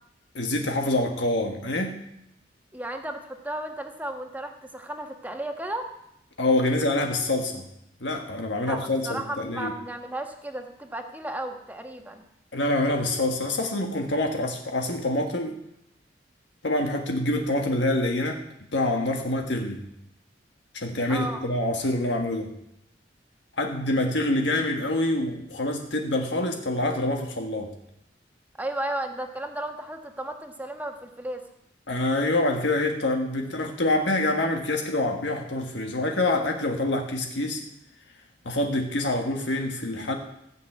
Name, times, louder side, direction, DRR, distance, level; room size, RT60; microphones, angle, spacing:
voice 1, 0.3-1.9 6.4-7.6 8.0-9.7 12.5-15.6 16.6-18.4 18.7-19.8 20.7-22.5 23.6-27.7 31.9-37.6 38.4-40.1, left 1 dB, 80° left, 3 dB, 1.5 m, -26 dB
voice 2, 2.7-5.9 8.6-12.2 21.1-21.4 28.6-31.4, right 1 dB, 10° right, 4 dB, 1.3 m, -34 dB
15.5 x 5.9 x 8.6 m, 0.80 s
head